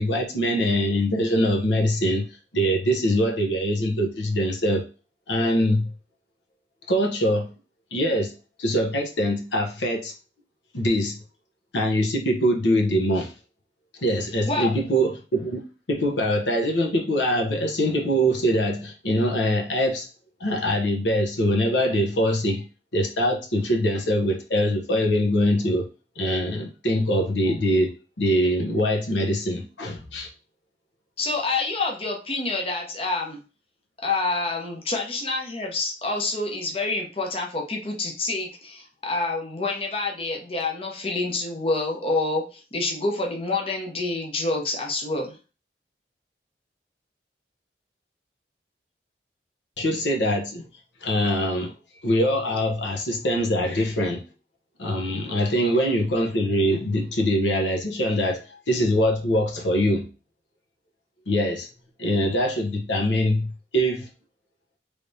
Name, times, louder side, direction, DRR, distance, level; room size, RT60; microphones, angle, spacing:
voice 1, 0.0-2.3 2.5-4.8 5.3-5.9 6.9-7.5 7.9-8.3 8.6-10.1 10.7-11.2 11.7-13.3 14.0-15.6 15.9-20.1 20.4-22.6 22.9-25.9 26.2-27.9 28.2-30.3 49.8-50.6 51.0-51.7 52.0-54.2 54.8-60.1 61.3-61.7 62.0-64.1, equal, 85° left, 0.9 m, -23 dB
voice 2, 31.2-33.4 34.0-45.4, left 3 dB, 30° left, 0.8 m, -27 dB
3.3 x 3.3 x 2.7 m
head